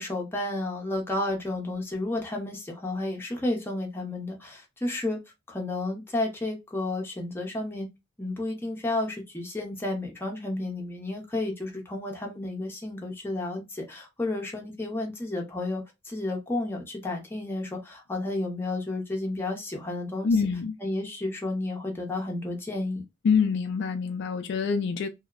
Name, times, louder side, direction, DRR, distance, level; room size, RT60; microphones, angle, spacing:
voice 1, 0.0-5.2 5.5-7.9 8.2-20.3 20.8-23.0, left 2 dB, 10° left, 0.7 m, -32 dB
voice 2, 20.2-20.8 23.2-25.1, left 5 dB, 60° left, 0.3 m, -25 dB
2.7 x 2.0 x 2.4 m
head